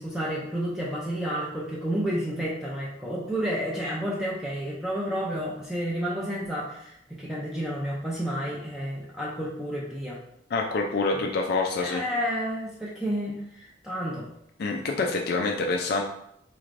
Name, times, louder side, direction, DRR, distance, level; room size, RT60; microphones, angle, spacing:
voice 1, 0.0-10.2 11.8-14.3, equal, 5° right, -6 dB, 0.5 m, -31 dB
voice 2, 10.5-12.0 14.6-16.0, left 3 dB, 60° left, 1 dB, 0.4 m, -26 dB
4.2 x 3.1 x 2.5 m, 0.76 s
head